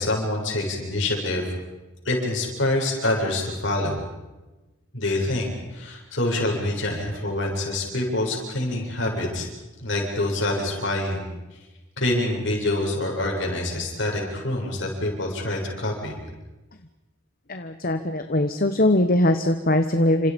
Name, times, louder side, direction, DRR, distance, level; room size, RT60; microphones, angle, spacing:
voice 1, 0.0-1.5 2.0-4.0 4.9-9.5 9.8-11.3 12.0-16.2, left 1 dB, 60° left, 0 dB, 7.5 m, -26 dB
voice 2, 17.5-20.3, left 1 dB, 45° left, 7 dB, 1.3 m, -21 dB
30.0 x 27.0 x 5.4 m, 1.1 s
head